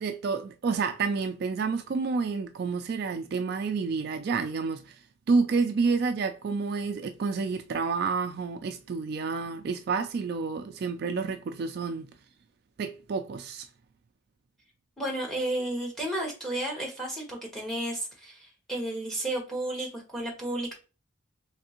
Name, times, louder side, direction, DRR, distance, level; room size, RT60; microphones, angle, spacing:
voice 1, 0.0-5.0 5.3-12.1 12.8-13.7, right 4 dB, 50° right, 0.3 m, -29 dB
voice 2, 15.0-20.7, right 1 dB, ahead, 1.1 m, -32 dB
3.5 x 3.3 x 2.8 m
head